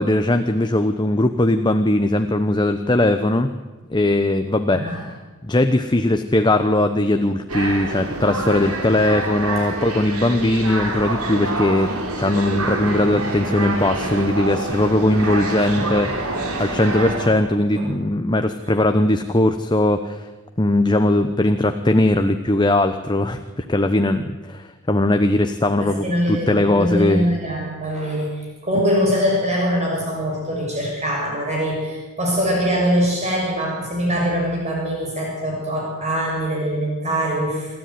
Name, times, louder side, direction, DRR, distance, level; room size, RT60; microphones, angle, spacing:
voice 1, 0.0-3.5 3.9-5.0 5.4-11.9 12.2-20.3 20.6-27.3, left 1 dB, 20° left, 7 dB, 0.9 m, -19 dB
voice 2, 4.7-5.0 15.4-15.9 17.7-17.8 25.8-28.3 28.6-37.7, equal, 30° right, -2 dB, 6.6 m, -23 dB
sound 1, 7.5-17.3, right 2 dB, 75° right, 3.7 m, -27 dB
27.0 x 13.0 x 9.4 m, 1.2 s
head